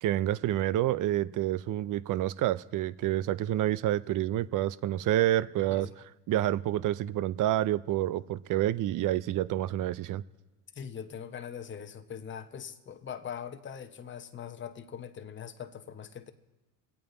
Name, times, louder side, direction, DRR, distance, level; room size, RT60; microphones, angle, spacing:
voice 1, 0.0-5.9 6.3-10.2, right 13 dB, 45° right, 18 dB, 0.6 m, -28 dB
voice 2, 10.7-16.3, left 8 dB, 25° left, 8 dB, 0.9 m, -42 dB
25.5 x 8.6 x 3.9 m, 1.1 s
supercardioid pair, 85°, 46 cm